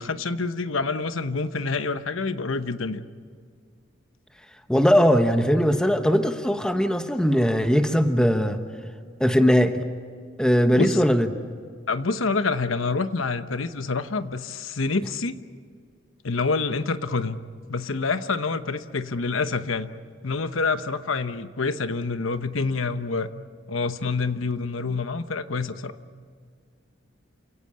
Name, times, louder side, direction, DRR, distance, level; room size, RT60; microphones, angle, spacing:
voice 1, 0.0-3.0 10.7-11.1 11.9-15.3 16.2-17.4 17.7-19.9 20.2-23.3 23.7-25.9, left 4 dB, 90° left, 10 dB, 1.0 m, -27 dB
voice 2, 4.7-8.6 9.2-9.8 10.4-11.3, equal, 5° left, 7 dB, 1.1 m, -20 dB
29.0 x 17.0 x 8.8 m, 2.1 s
head